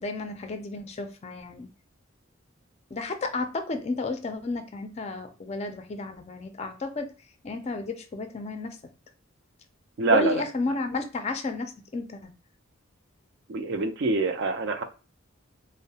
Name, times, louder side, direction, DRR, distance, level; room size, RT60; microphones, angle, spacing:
voice 1, 0.0-1.7 2.9-7.1 7.4-8.8 10.1-12.3, left 3 dB, 30° left, 0.4 m, -32 dB
voice 2, 10.0-10.4 13.5-14.8, right 3 dB, 60° right, 0.4 m, -25 dB
2.6 x 2.0 x 2.7 m
head